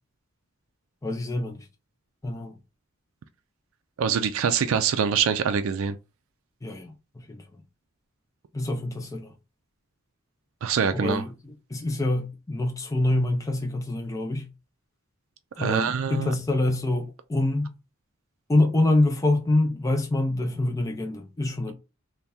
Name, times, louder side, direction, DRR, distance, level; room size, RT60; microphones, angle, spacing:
voice 1, 1.0-1.6 2.2-2.5 6.6-6.9 7.3-7.4 8.5-9.3 10.9-14.5 15.6-17.7 18.5-21.7, left 2 dB, 15° left, 0.4 m, -26 dB
voice 2, 4.0-5.9 10.6-11.2 15.6-16.3, right 7 dB, 70° right, 0.4 m, -24 dB
3.4 x 2.2 x 4.1 m
head